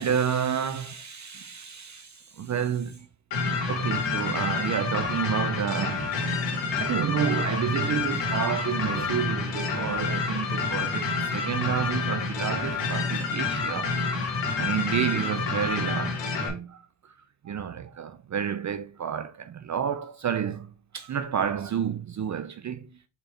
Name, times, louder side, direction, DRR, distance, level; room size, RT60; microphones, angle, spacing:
voice 1, 0.0-3.1 3.7-6.1 6.8-14.0 14.6-17.1 17.4-22.9, right 8 dB, 45° right, 0.5 m, -30 dB
sound 1, 3.3-16.5, left 4 dB, 90° left, 1.9 m, -28 dB
5.2 x 4.6 x 4.3 m
cardioid pair, 105°, 42 cm